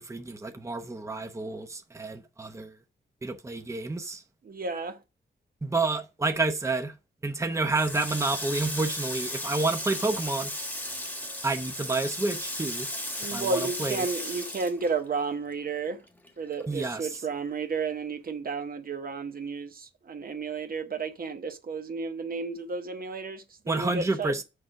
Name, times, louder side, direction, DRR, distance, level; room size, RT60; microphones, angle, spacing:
voice 1, 0.0-2.7 3.2-4.2 5.6-6.9 7.2-10.5 11.4-12.9 13.3-14.1 16.7-17.1 23.7-24.4, right 3 dB, 15° right, 0.8 m, -29 dB
voice 2, 4.4-5.0 13.2-16.0 16.4-24.4, right 4 dB, 50° right, 0.9 m, -32 dB
Water tap faucet, 7.7-15.5 15.8-17.2, left 1 dB, 10° left, 1.3 m, -35 dB
6.7 x 5.0 x 6.3 m
wide cardioid pair, 145°, 19 cm